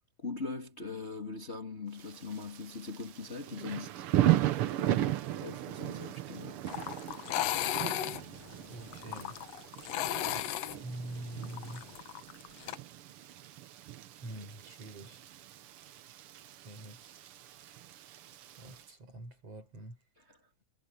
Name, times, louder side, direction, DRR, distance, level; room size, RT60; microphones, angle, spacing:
voice 1, 0.2-4.1 5.4-6.6 20.2-20.4, left 4 dB, 20° left, 2.5 m, -41 dB
Thunder / Rain, 2.0-18.8, right 13 dB, 70° right, 1.4 m, -36 dB
sound 1, 6.7-12.8, left 13 dB, 70° left, 1.8 m, -36 dB
voice 2, 8.7-9.4 10.8-11.9 14.2-15.2 16.6-17.2 18.6-20.0, right 1 dB, 50° right, 8.0 m, -45 dB
omnidirectional pair, 3.5 m